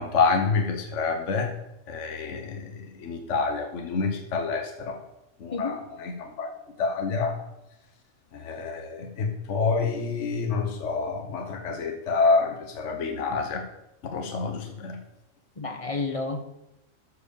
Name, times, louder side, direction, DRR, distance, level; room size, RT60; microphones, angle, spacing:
voice 1, 0.0-1.5 1.9-5.0 5.4-6.5 6.8-7.4 8.3-13.6 14.1-15.0, left 4 dB, 65° left, 4 dB, 1.3 m, -27 dB
voice 2, 15.6-16.4, left 3 dB, 30° left, 6 dB, 0.9 m, -30 dB
13.0 x 4.7 x 6.9 m, 0.87 s
omnidirectional pair, 1.4 m